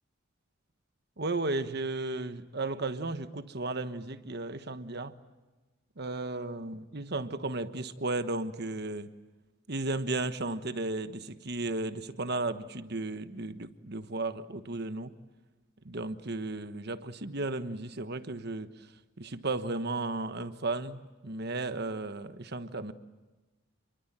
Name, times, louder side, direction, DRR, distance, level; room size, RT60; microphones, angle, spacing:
voice 1, 1.2-5.2 6.0-9.1 9.7-15.1 15.8-18.7 19.2-22.9, right 2 dB, 50° right, 10 dB, 1.3 m, -34 dB
28.5 x 22.5 x 8.9 m, 1.2 s
head